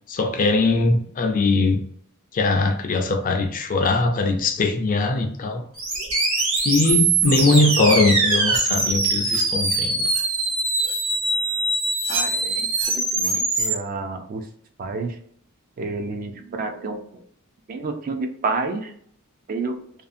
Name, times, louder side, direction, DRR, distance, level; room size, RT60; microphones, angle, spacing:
voice 1, 0.1-1.8 2.3-5.6 6.6-10.0, left 3 dB, 40° left, 0.4 m, -21 dB
sound 1, 5.8-13.7, right 3 dB, 65° right, 1.2 m, -22 dB
voice 2, 12.1-14.5 14.8-15.2 15.8-17.2 17.7-18.9 19.5-19.8, right 3 dB, 40° right, 0.3 m, -30 dB
2.6 x 2.4 x 2.5 m
head